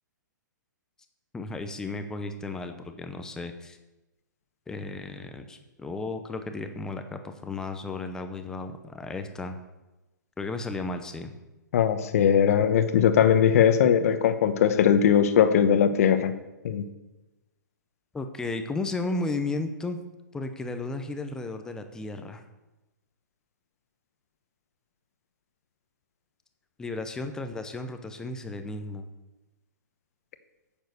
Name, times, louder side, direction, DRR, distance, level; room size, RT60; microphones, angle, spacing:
voice 1, 1.3-3.8 4.7-9.6 10.4-11.3 18.1-20.0 20.3-22.4 26.8-29.1, left 3 dB, 5° left, 7 dB, 0.7 m, -34 dB
voice 2, 11.7-16.3 16.6-16.9, left 8 dB, 50° left, 10 dB, 1.0 m, -20 dB
9.3 x 7.3 x 6.7 m, 1.0 s
hypercardioid pair, 155°, 10 cm